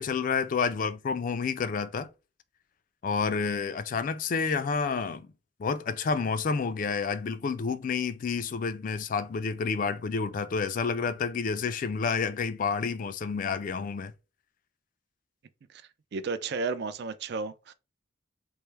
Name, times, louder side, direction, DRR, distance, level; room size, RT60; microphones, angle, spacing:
voice 1, 0.0-2.1 3.0-5.3 5.6-14.1, left 5 dB, 45° left, 0.3 m, -29 dB
voice 2, 16.1-17.7, right 4 dB, 55° right, 0.4 m, -33 dB
4.4 x 2.1 x 3.3 m
head